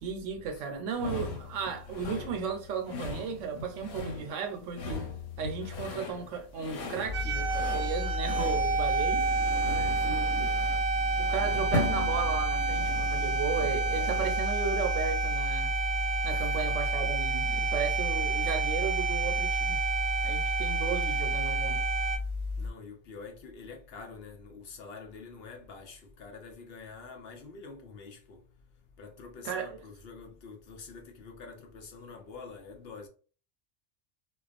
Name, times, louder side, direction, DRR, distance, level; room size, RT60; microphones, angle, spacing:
voice 1, 0.0-5.1 5.4-9.3 10.0-10.6 11.2-15.7 16.2-19.8 20.2-21.8 29.4-29.8, right 6 dB, 85° right, 1.0 m, -35 dB
sound 1, 1.0-14.5, left 3 dB, 90° left, 1.1 m, -39 dB
voice 2, 5.7-6.1 9.5-10.2 16.3-16.7 22.6-28.4 29.0-33.1, left 4 dB, 65° left, 0.7 m, -47 dB
sound 2, 7.1-22.7, left 3 dB, 40° right, 0.8 m, -34 dB
sound 3, 7.1-22.2, right 6 dB, 60° right, 0.4 m, -30 dB
2.4 x 2.2 x 2.4 m
omnidirectional pair, 1.3 m